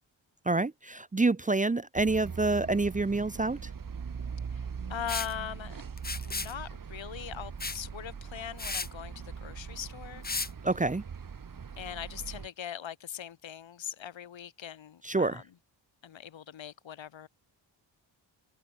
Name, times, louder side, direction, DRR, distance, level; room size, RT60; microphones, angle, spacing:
voice 1, 0.5-3.6 10.6-11.0 15.0-15.4, right 3 dB, 15° right, 0.8 m, -27 dB
sound 1, 2.0-12.5, right 6 dB, 45° right, 4.6 m, -41 dB
voice 2, 4.5-5.8 6.3-10.3 11.8-15.4 16.0-17.3, left 9 dB, 75° left, 4.4 m, -41 dB
Liquid, 5.1-5.3 6.0-6.5 7.6-7.8 8.2-8.3 8.6-8.9 10.2-10.5, left 4 dB, 20° left, 1.4 m, -34 dB
wide cardioid pair, 130°, 46 cm